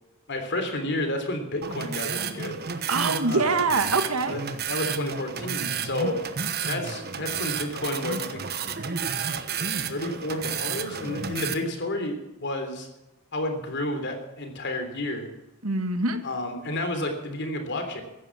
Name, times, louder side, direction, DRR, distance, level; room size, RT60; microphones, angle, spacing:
voice 1, 0.3-2.7 3.3-3.5 4.3-4.4 4.7-6.2 6.7-8.6 9.9-12.9 13.3-15.3 16.2-18.0, left 1 dB, 55° left, 6 dB, 3.3 m, -31 dB
sound 1, 1.6-11.5, right 6 dB, 45° right, 1.2 m, -31 dB
voice 2, 2.9-4.3 15.6-16.2, right 3 dB, 75° right, 8 dB, 1.7 m, -24 dB
15.0 x 11.0 x 7.5 m, 0.98 s
head